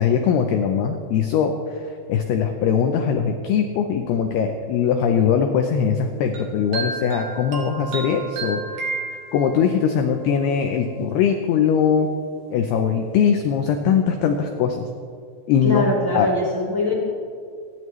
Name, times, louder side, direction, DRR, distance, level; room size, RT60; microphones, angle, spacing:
voice 1, 0.0-8.6 9.3-12.1 12.5-14.9 15.5-15.8 16.1-16.3, left 7 dB, 90° left, 5 dB, 2.2 m, -21 dB
sound 1, 6.3-9.8, right 4 dB, 55° right, 2.8 m, -32 dB
voice 2, 15.6-16.9, left 2 dB, 35° left, -3 dB, 1.3 m, -22 dB
27.5 x 11.0 x 3.2 m, 2.3 s
omnidirectional pair, 5.6 m